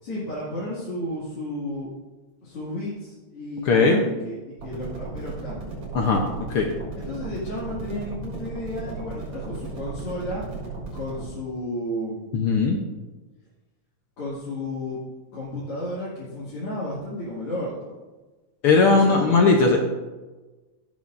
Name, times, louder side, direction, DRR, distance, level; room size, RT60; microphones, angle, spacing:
voice 1, 0.0-1.9 2.4-5.8 6.9-10.5 10.9-12.3 14.2-15.0 15.3-18.0 18.9-19.4, left 1 dB, 50° left, -9 dB, 2.9 m, -33 dB
voice 2, 3.7-4.0 5.9-6.2 6.5-6.7 12.3-12.8 18.6-19.8, left 4 dB, 75° left, 1 dB, 1.3 m, -18 dB
sound 1, 4.6-11.3, right 3 dB, 55° right, 4.7 m, -36 dB
16.0 x 7.1 x 2.6 m, 1.2 s
omnidirectional pair, 3.5 m